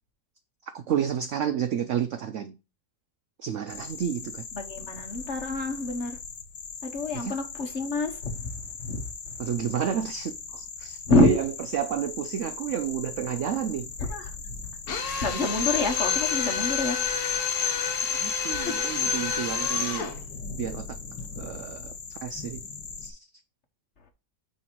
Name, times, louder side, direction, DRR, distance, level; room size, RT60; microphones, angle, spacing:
voice 1, 0.6-2.6 3.4-4.5 7.1-7.4 9.4-13.9 18.1-20.3 20.5-21.0 21.4-22.6 23.0-23.3, right 9 dB, 75° right, 0.7 m, -31 dB
sound 1, 3.7-23.1, left 5 dB, 85° left, 1.8 m, -40 dB
voice 2, 4.5-6.2 6.8-9.4 11.0-11.4 14.0-14.5 15.0-17.1 18.5-18.9, left 3 dB, 45° left, 1.2 m, -28 dB
Drill, 14.9-20.2, left 6 dB, 60° left, 1.5 m, -28 dB
9.1 x 3.5 x 4.5 m
omnidirectional pair, 1.9 m